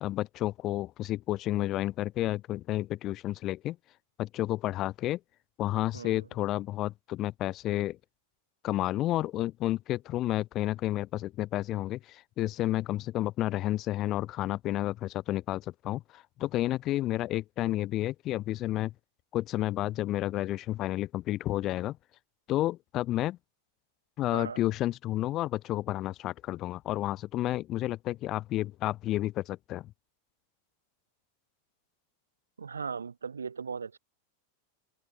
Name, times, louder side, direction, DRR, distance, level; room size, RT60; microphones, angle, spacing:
voice 1, 0.0-3.8 4.2-5.2 5.6-8.0 8.6-18.9 19.3-22.0 22.5-23.4 24.2-29.9, left 15 dB, 35° left, 1.4 m, -31 dB
voice 2, 5.9-6.3 24.3-24.7 32.6-34.0, right 5 dB, 75° right, 3.0 m, -38 dB
open air
figure-of-eight pair, 90°, 0 cm